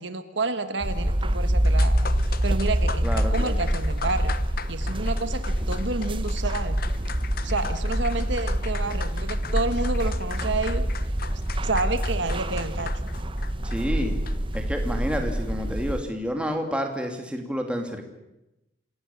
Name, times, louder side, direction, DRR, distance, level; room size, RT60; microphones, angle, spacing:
voice 1, 0.0-1.9 2.4-4.3 4.7-6.8 7.4-10.8 11.6-12.9, right 3 dB, 65° right, 10 dB, 1.5 m, -29 dB
sound 1, 0.8-16.0, right 1 dB, 25° right, 1.1 m, -26 dB
sound 2, 1.6-14.6, left 6 dB, 50° left, 1.0 m, -39 dB
voice 2, 3.0-3.5 13.6-14.1 14.5-18.0, equal, 5° right, 4 dB, 2.9 m, -29 dB
27.0 x 17.0 x 8.6 m, 0.91 s
head